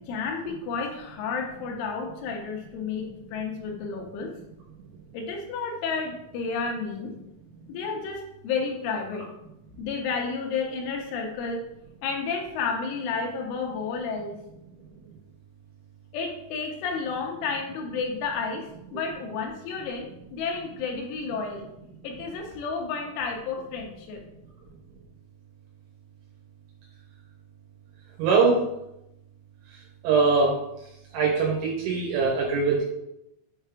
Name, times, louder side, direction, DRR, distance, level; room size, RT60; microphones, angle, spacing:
voice 1, 0.1-4.3 5.1-7.1 7.7-9.3 9.8-11.6 12.0-14.4 16.1-21.7 22.0-24.2, left 5 dB, 80° left, 1 dB, 3.4 m, -31 dB
voice 2, 28.2-28.6 30.0-30.6 31.1-32.8, right 4 dB, 80° right, -2 dB, 3.3 m, -22 dB
7.9 x 3.3 x 4.9 m, 0.84 s
omnidirectional pair, 5.7 m